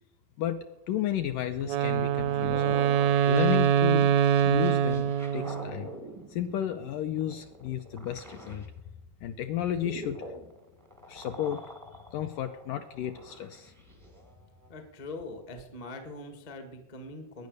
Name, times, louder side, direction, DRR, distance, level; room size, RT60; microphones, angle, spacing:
voice 1, 0.4-2.8 3.3-4.2 4.4-5.9 6.3-8.7 9.2-10.2 11.1-11.8 12.1-13.7, left 10 dB, 80° left, 7 dB, 2.0 m, -33 dB
Wind instrument woodwind instrument, 1.6-5.8, right 9 dB, 80° right, 1.6 m, -24 dB
sound 1, 1.9-8.8 9.3-14.8, equal, 20° right, 0.4 m, -45 dB
voice 2, 14.7-17.5, left 2 dB, 40° left, 6 dB, 0.5 m, -42 dB
20.5 x 9.5 x 6.6 m, 0.94 s
omnidirectional pair, 4.5 m